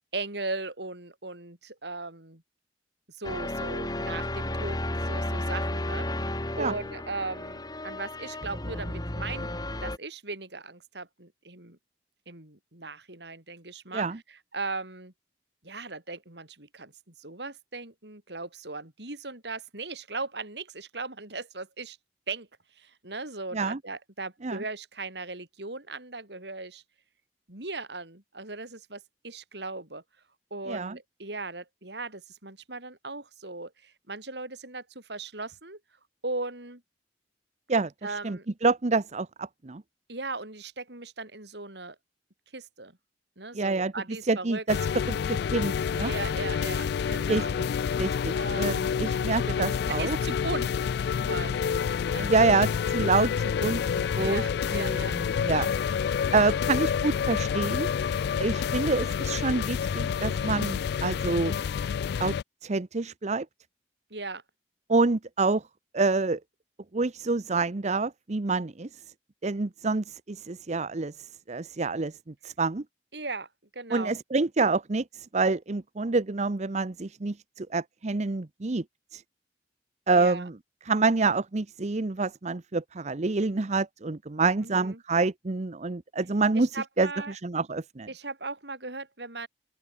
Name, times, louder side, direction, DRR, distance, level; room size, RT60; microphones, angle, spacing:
voice 1, 0.1-2.4 3.1-9.5 9.8-11.8 12.3-15.1 15.6-22.0 22.3-22.5 22.8-26.8 27.5-30.0 30.5-35.8 36.2-36.8 38.0-38.5 40.1-41.9 42.5-42.9 43.4-44.6 46.0-47.6 48.3-48.9 49.8-50.9 51.2-52.7 54.2-55.2 64.1-64.4 73.1-73.5 73.7-74.2 80.1-80.5 84.6-85.0 86.5-87.4 88.1-89.5, right 3 dB, 65° right, 4.9 m, -38 dB
sound 1, 3.2-10.0, left 1 dB, 20° left, 2.9 m, -33 dB
voice 2, 37.7-39.8 43.5-43.9 44.3-44.8 45.3-46.1 47.3-47.7 48.0-50.2 52.2-53.8 54.2-54.4 54.7-55.7 56.3-57.9 58.4-61.5 62.2-62.4 62.6-63.5 64.9-65.6 65.9-66.4 66.9-68.9 69.4-71.1 71.5-72.1 72.4-72.8 73.9-78.8 79.1-79.2 80.1-80.6 80.8-86.7 87.0-88.1, right 3 dB, 40° right, 0.7 m, -27 dB
sound 2, 44.7-62.4, left 7 dB, 65° left, 0.3 m, -28 dB
open air
head